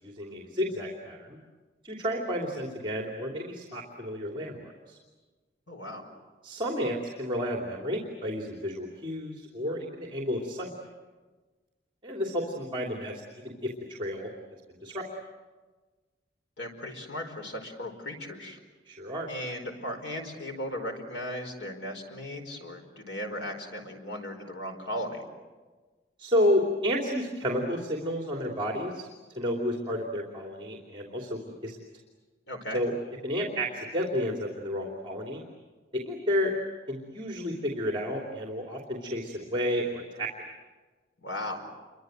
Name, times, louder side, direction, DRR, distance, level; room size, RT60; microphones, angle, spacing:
voice 1, 0.0-1.4 1.8-5.0 6.4-10.7 12.0-13.7 14.0-14.3 14.7-15.0 18.9-19.3 26.2-29.1 29.3-31.8 32.7-32.9 33.2-35.4 35.9-36.6 36.9-40.3, equal, 25° right, 1 dB, 3.0 m, -31 dB
voice 2, 5.7-6.1 16.6-18.6 19.3-25.2 32.5-32.8 41.2-41.7, left 1 dB, 80° left, 4 dB, 5.0 m, -37 dB
29.0 x 24.5 x 8.0 m, 1.3 s
head